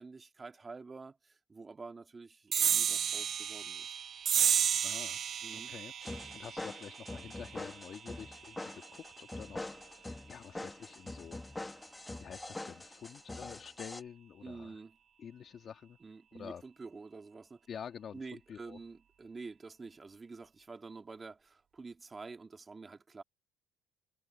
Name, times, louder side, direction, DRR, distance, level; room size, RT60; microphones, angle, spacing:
voice 1, 0.0-4.0 5.4-5.7 14.4-15.0 16.0-17.6 18.1-23.2, right 4 dB, 20° right, 2.0 m, -48 dB
sound 1, 2.5-9.4, right 8 dB, 45° right, 0.7 m, -33 dB
voice 2, 4.8-5.2 5.5-11.9 12.2-14.8 15.2-16.0 16.3-16.6 17.7-18.8, left 8 dB, 45° left, 1.6 m, -49 dB
sound 2, 6.0-14.0, left 2 dB, 10° left, 1.2 m, -44 dB
cardioid pair, 120°, 0 cm